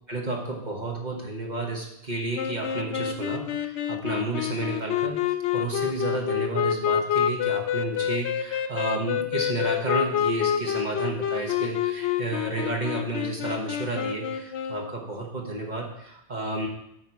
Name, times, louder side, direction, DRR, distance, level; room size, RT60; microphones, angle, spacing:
voice 1, 0.1-5.2 5.5-16.7, right 2 dB, 40° right, -1 dB, 1.5 m, -31 dB
sound 1, 2.4-15.0, left 9 dB, 80° left, 0.9 m, -28 dB
13.0 x 4.4 x 4.7 m, 0.79 s
omnidirectional pair, 1.1 m